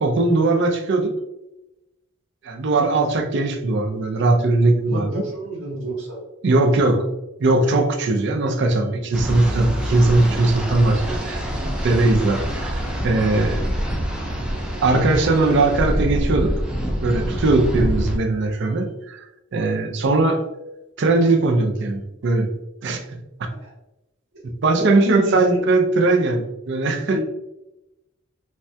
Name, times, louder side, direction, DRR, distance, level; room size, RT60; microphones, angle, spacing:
voice 1, 0.0-1.1 2.4-5.2 6.4-7.1 7.4-11.4 11.8-13.6 14.8-16.5 17.0-19.2 19.5-20.4 21.0-22.5 22.8-23.5 24.4-27.2, right 2 dB, 60° right, 4 dB, 0.4 m, -19 dB
voice 2, 4.9-6.2 6.5-6.6 23.6-23.7 24.8-25.4 27.1-27.2, equal, 85° right, -5 dB, 0.9 m, -29 dB
sound 1, 9.1-18.2, equal, 5° right, 0.4 m, -26 dB
3.2 x 2.2 x 2.6 m, 0.93 s
head